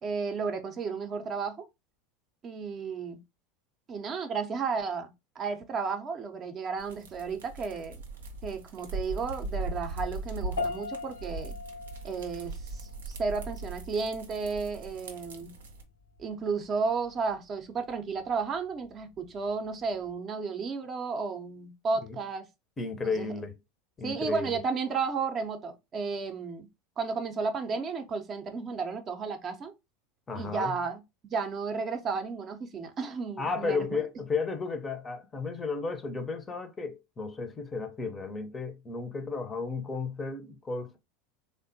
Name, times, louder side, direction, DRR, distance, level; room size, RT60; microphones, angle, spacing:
voice 1, 0.0-1.6 2.4-3.2 3.9-5.1 5.4-7.9 8.4-11.6 12.0-15.5 16.2-22.5 23.2-23.3 24.0-26.7 27.0-29.7 30.3-31.0 31.3-34.0, right 5 dB, 35° right, 0.6 m, -33 dB
sound 1, 6.8-15.8, right 2 dB, 75° right, 0.6 m, -39 dB
sound 2, 10.6-20.1, left 3 dB, 80° left, 0.6 m, -42 dB
voice 2, 22.8-23.6 24.0-24.6 30.3-30.7 33.4-41.0, left 4 dB, 20° left, 0.6 m, -33 dB
3.4 x 2.1 x 2.6 m
figure-of-eight pair, 80°, 0 cm